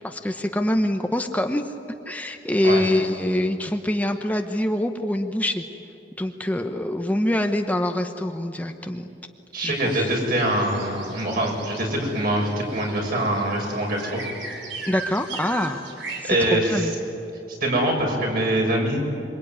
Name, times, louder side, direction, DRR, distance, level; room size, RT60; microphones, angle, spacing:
voice 1, 0.0-1.6 2.1-5.6 6.2-9.1 9.6-10.1 14.9-15.8 16.2-16.9, left 1 dB, 10° left, 5 dB, 0.9 m, -25 dB
voice 2, 9.5-14.2 16.3-16.9 17.5-19.0, right 1 dB, 55° right, 0 dB, 6.7 m, -24 dB
sound 1, 9.7-16.2, right 3 dB, 80° right, 4.1 m, -38 dB
26.5 x 24.0 x 9.6 m, 2.8 s
head